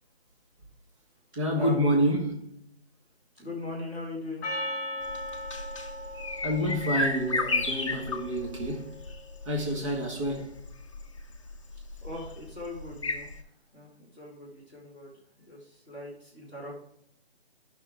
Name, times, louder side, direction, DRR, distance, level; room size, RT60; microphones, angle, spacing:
voice 1, 1.4-2.6 6.4-9.0 9.5-10.6, equal, 30° right, 1.8 m, -28 dB
voice 2, 3.3-4.5 12.0-13.3 13.7-16.7, left 1 dB, 15° right, 3.2 m, -40 dB
Percussion, 4.4-9.0, left 1 dB, 5° left, 1.0 m, -38 dB
sound 1, 5.0-13.4, left 2 dB, 30° left, 0.7 m, -33 dB
12.5 x 6.0 x 3.6 m
hypercardioid pair, 170°, 32 cm